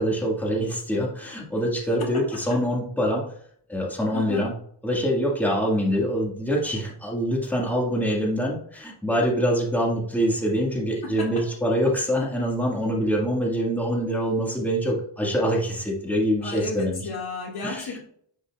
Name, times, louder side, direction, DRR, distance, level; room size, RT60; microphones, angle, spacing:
voice 1, 0.0-3.2 3.7-4.5 4.8-17.0 17.6-17.8, equal, 5° left, -2 dB, 1.8 m, -25 dB
voice 2, 2.0-2.6 4.1-4.5 11.0-11.5 16.4-18.0, left 3 dB, 60° left, 0 dB, 2.1 m, -34 dB
10.0 x 5.5 x 2.4 m, 0.62 s
cardioid pair, 105°, 42 cm